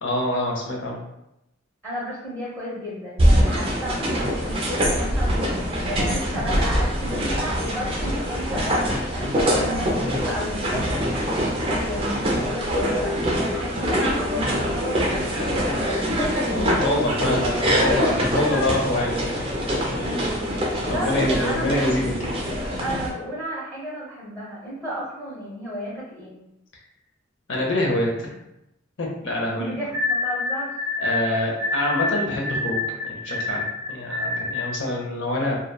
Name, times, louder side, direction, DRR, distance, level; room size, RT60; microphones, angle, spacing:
voice 1, 0.0-1.0 16.5-19.4 19.8-20.2 20.9-22.3 27.5-28.3 29.0-29.7 31.0-35.6, left 1 dB, 65° left, -1 dB, 0.7 m, -26 dB
voice 2, 1.8-5.5 5.8-16.1 18.4-18.6 19.4-19.5 20.6-22.0 22.8-26.4 29.6-30.7 31.3-31.5, equal, 10° left, -7 dB, 0.8 m, -33 dB
sound 1, 3.2-23.1, equal, 30° right, 0.5 m, -24 dB
sound 2, 29.9-34.8, left 3 dB, 90° right, 0.5 m, -27 dB
2.9 x 2.2 x 2.3 m, 0.85 s
head